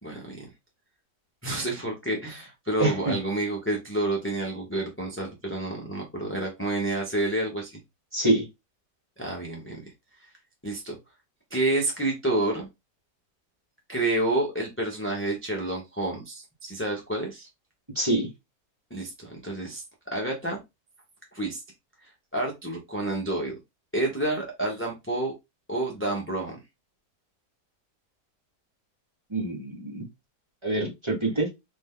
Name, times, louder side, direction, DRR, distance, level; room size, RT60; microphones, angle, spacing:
voice 1, 0.0-0.5 1.4-7.8 9.2-9.9 10.2-10.3 10.6-10.9 11.5-12.7 13.9-17.5 18.9-19.8 20.1-20.6 21.3-21.6 22.0-23.6 23.9-25.3 25.7-26.6, right 2 dB, 10° left, 0.6 m, -29 dB
voice 2, 2.8-3.1 8.1-8.5 17.9-18.3 29.3-30.1 30.6-31.5, right 2 dB, 20° right, 1.2 m, -26 dB
4.3 x 2.6 x 3.6 m
omnidirectional pair, 1.9 m